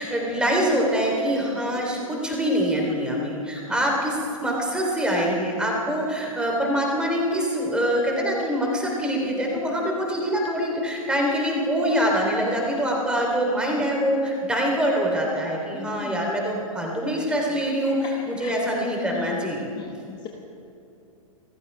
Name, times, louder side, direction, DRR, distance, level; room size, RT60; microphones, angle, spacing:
voice 1, 0.0-19.6, equal, 5° right, -1 dB, 3.4 m, -24 dB
voice 2, 15.7-16.1 18.4-18.6 19.1-19.3 19.8-20.3, left 9 dB, 25° left, 2 dB, 1.1 m, -39 dB
28.0 x 15.0 x 3.5 m, 2.8 s
figure-of-eight pair, 115°, 18 cm